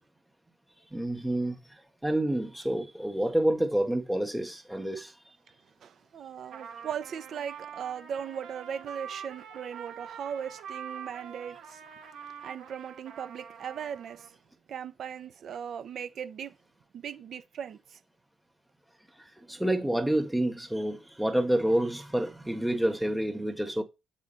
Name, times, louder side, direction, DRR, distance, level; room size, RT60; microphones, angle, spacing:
voice 1, 0.9-1.6 2.0-5.1 19.5-23.8, right 1 dB, 5° right, 1.7 m, -28 dB
voice 2, 5.8-11.8 12.4-14.3 14.7-16.5 16.9-18.0, right 8 dB, 60° right, 1.0 m, -38 dB
Trumpet, 6.4-14.3, right 7 dB, 85° right, 2.2 m, -45 dB
7.4 x 4.9 x 4.2 m
cardioid pair, 90°, 0 cm